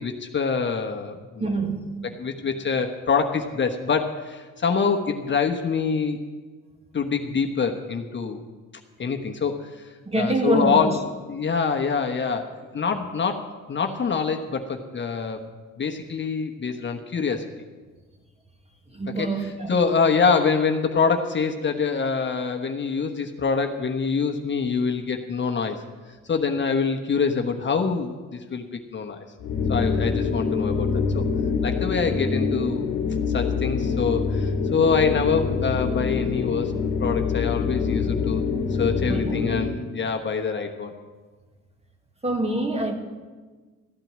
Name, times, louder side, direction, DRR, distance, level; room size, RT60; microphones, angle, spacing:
voice 1, 0.0-1.6 2.2-6.2 6.9-8.4 9.0-11.0 11.3-15.5 15.8-17.5 19.2-19.3 19.7-25.8 26.3-29.2 29.7-31.2 31.6-32.9 33.3-36.7 37.0-38.4 38.7-40.9, left 5 dB, 40° left, 4 dB, 1.1 m, -25 dB
voice 2, 1.4-1.9 10.1-10.9 18.9-19.8 39.0-39.4 42.2-43.0, right 2 dB, 20° right, 4 dB, 1.9 m, -25 dB
sound 1, 29.4-39.8, left 5 dB, 85° left, 1.2 m, -25 dB
14.5 x 9.0 x 7.3 m, 1.4 s
cardioid pair, 90°, 30 cm